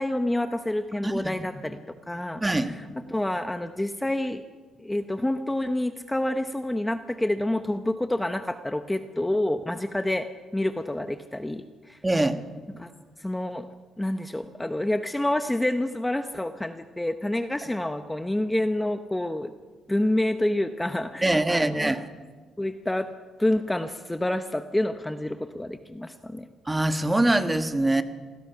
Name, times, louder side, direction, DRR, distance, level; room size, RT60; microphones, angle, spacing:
voice 1, 0.0-1.8 2.1-2.8 3.1-4.4 4.8-12.0 12.7-12.9 13.2-13.7 14.0-19.5 19.9-22.0 22.6-23.1 23.4-26.4, left 1 dB, 10° left, 8 dB, 0.9 m, -28 dB
voice 2, 2.4-2.7 12.0-12.4 21.2-22.1 26.6-28.0, right 1 dB, 15° right, 8 dB, 1.6 m, -23 dB
27.0 x 20.0 x 5.9 m, 1.4 s
cardioid pair, 90°, 0 cm